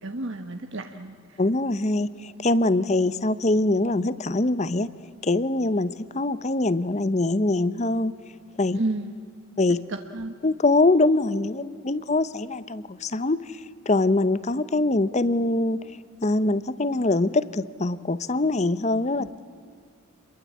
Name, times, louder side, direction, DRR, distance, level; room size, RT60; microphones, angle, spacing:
voice 1, 0.0-1.4 8.8-9.2 9.9-10.3 19.2-19.3, right 2 dB, 55° right, 6 dB, 1.2 m, -32 dB
voice 2, 1.4-4.9 5.2-8.1 8.6-8.8 9.6-9.8 10.4-13.4 13.9-15.8 16.2-19.4, left 2 dB, 30° left, 16 dB, 0.7 m, -23 dB
29.0 x 22.0 x 8.4 m, 2.1 s
head